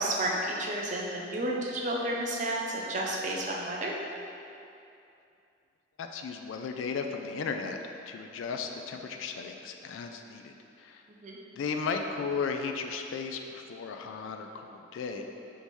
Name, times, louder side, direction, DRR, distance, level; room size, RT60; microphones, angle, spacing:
voice 1, 0.0-4.0 11.2-11.4, right 1 dB, 40° right, -2 dB, 0.5 m, -31 dB
voice 2, 6.0-7.8 8.1-11.0 11.6-15.2, left 5 dB, 85° left, 5 dB, 0.3 m, -35 dB
4.0 x 3.6 x 3.1 m, 2.6 s
head